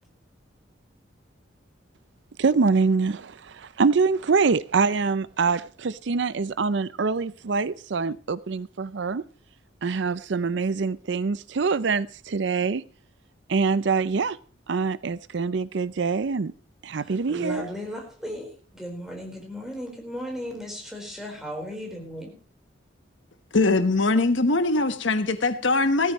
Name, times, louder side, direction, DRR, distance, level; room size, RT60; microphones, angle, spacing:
voice 1, 2.4-9.2 9.8-12.8 13.5-14.4 14.7-16.5 16.8-17.7, right 4 dB, 65° right, 0.5 m, -24 dB
voice 2, 17.0-18.5 18.7-22.3, equal, ahead, 4.3 m, -36 dB
voice 3, 23.5-26.1, left 3 dB, 70° left, 1.3 m, -22 dB
16.5 x 14.0 x 3.1 m
head